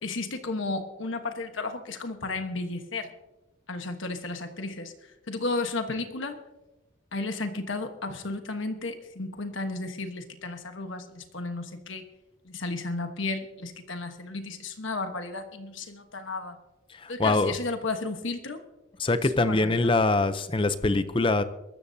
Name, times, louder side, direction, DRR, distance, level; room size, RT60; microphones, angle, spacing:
voice 1, 0.0-3.1 3.7-4.9 5.3-6.4 7.1-12.0 12.4-16.6 17.1-18.6 19.2-19.9, left 3 dB, 65° left, 6 dB, 1.2 m, -33 dB
voice 2, 17.0-17.5 19.0-21.4, left 2 dB, 25° left, 11 dB, 0.5 m, -23 dB
23.0 x 13.5 x 2.7 m, 1.0 s
head